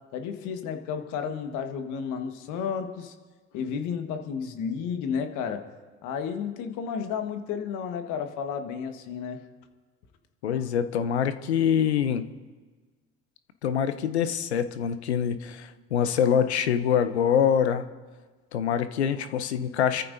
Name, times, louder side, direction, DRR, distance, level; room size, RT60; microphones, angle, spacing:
voice 1, 0.1-3.1 3.5-5.6 6.0-9.4, left 7 dB, 65° left, 6 dB, 1.5 m, -32 dB
voice 2, 10.4-12.2 13.6-17.8 18.5-20.0, left 8 dB, 85° left, 11 dB, 0.7 m, -25 dB
29.0 x 14.0 x 2.7 m, 1.4 s
hypercardioid pair, 50°, 32 cm